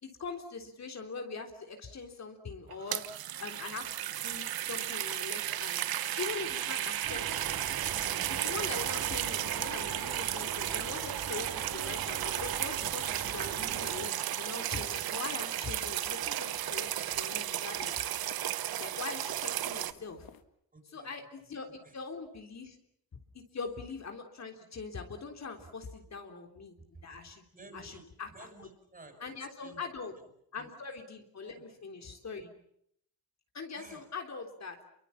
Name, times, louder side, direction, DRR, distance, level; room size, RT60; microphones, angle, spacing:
voice 1, 0.0-3.1 3.4-5.8 6.2-7.4 8.3-18.0 18.8-20.3 20.9-22.8 23.3-26.8 27.0-27.4 27.7-28.3 28.6-28.7 29.2-30.1 30.5-32.5 33.5-34.8, left 4 dB, 45° left, 3 dB, 3.6 m, -42 dB
sound 1, 2.7-19.9, right 12 dB, 70° right, 1.1 m, -34 dB
sound 2, 6.2-20.4, left 9 dB, 70° left, 1.9 m, -56 dB
sound 3, 7.0-14.1, right 5 dB, 55° right, 4.3 m, -43 dB
voice 2, 20.7-21.1 21.4-22.0 25.5-25.7 26.0-26.2 26.8-29.3 29.6-29.8 30.2-30.7 31.4-32.2 33.7-34.0, right 2 dB, 25° right, 7 dB, 7.3 m, -55 dB
28.0 x 23.5 x 7.3 m, 0.72 s
cardioid pair, 95°, 37 cm